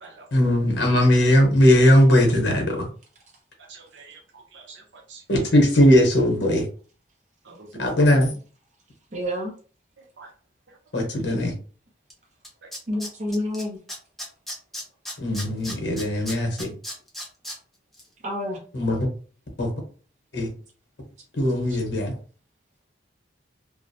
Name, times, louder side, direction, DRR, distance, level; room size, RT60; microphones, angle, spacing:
voice 1, 0.3-2.9 5.3-6.6 7.8-8.3 10.9-11.5 15.2-16.7 18.7-19.1 19.6-19.7 20.3-20.5 21.4-22.1, left 1 dB, 65° left, 0.9 m, -19 dB
voice 2, 3.6-5.2 7.4-8.2 10.0-10.3 10.7-10.8 12.6-12.7, right 4 dB, 75° right, 0.6 m, -46 dB
voice 3, 9.1-9.5 12.9-13.8 18.2-18.6 21.7-21.8, left 1 dB, 40° right, 0.7 m, -28 dB
Tools, 12.1-12.2 12.4-13.6 13.9-17.6 17.9-18.0, left 1 dB, ahead, 0.5 m, -35 dB
2.4 x 2.0 x 2.6 m
head